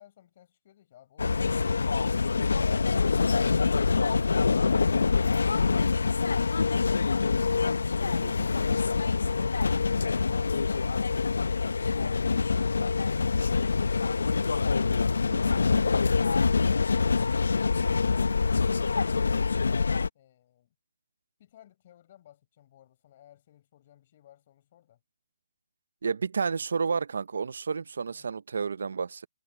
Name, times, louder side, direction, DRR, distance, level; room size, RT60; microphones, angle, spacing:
voice 1, 0.0-2.1 20.1-20.7 21.4-25.0 28.1-28.3, left 12 dB, 35° left, 5.4 m, -58 dB
sound 1, 1.2-20.1, left 4 dB, 80° left, 0.8 m, -25 dB
voice 2, 26.0-29.3, right 5 dB, 65° right, 0.6 m, -31 dB
hypercardioid pair, 165°, 0 cm